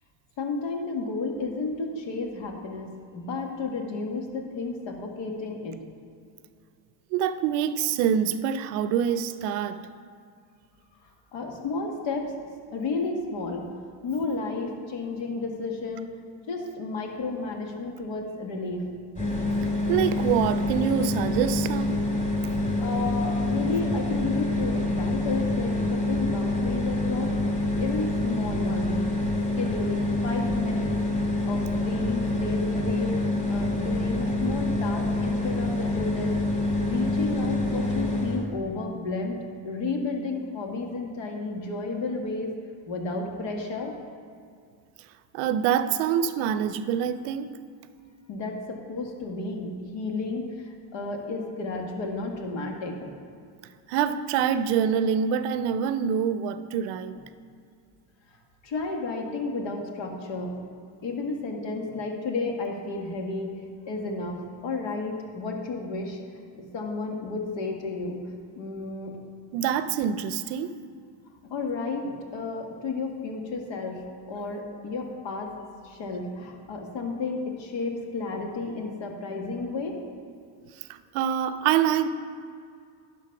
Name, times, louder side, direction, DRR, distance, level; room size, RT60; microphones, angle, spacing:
voice 1, 0.4-5.8 11.3-12.4 12.7-13.7 14.0-16.1 16.5-18.9 22.8-27.4 27.8-29.0 29.6-30.9 31.5-33.1 33.5-36.4 36.8-39.4 39.6-42.5 42.9-43.9 48.3-53.2 58.6-60.5 61.0-63.6 63.9-66.2 66.5-68.2 68.6-69.2 71.4-75.5 75.8-80.0, left 3 dB, 65° left, 2 dB, 1.7 m, -32 dB
voice 2, 7.1-9.8 19.9-21.9 45.3-47.5 53.9-57.2 69.5-70.7 81.1-82.1, right 8 dB, 85° right, 12 dB, 0.6 m, -25 dB
sound 1, 19.1-38.4, left 2 dB, 15° left, 2.1 m, -26 dB
11.0 x 4.2 x 5.8 m, 2.3 s
supercardioid pair, 85°, 48 cm